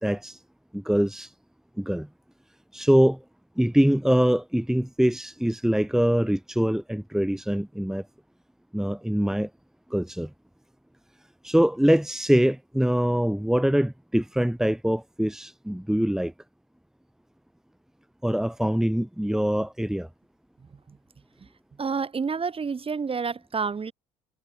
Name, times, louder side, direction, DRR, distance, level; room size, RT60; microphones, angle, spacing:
voice 1, 0.0-0.4 0.7-1.3 1.8-2.1 2.7-3.2 3.6-8.1 8.7-9.5 9.9-10.3 11.4-16.3 18.2-20.1, equal, ahead, 2.8 m, -23 dB
voice 2, 21.8-23.9, right 5 dB, 25° right, 5.6 m, -29 dB
figure-of-eight pair, 60°, 21 cm